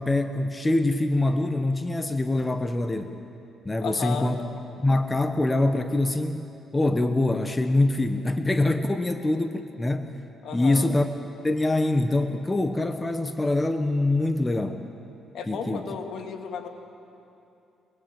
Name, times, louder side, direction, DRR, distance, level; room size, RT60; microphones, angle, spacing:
voice 1, 0.0-3.1 3.6-4.4 4.8-6.4 6.7-10.1 10.5-11.1 11.4-14.8 15.5-15.8, left 2 dB, 20° left, 7 dB, 1.3 m, -24 dB
voice 2, 3.8-4.4 10.4-10.9 15.3-16.7, left 6 dB, 70° left, 3 dB, 2.7 m, -34 dB
27.0 x 20.5 x 9.0 m, 2.7 s
cardioid pair, 90°, 0 cm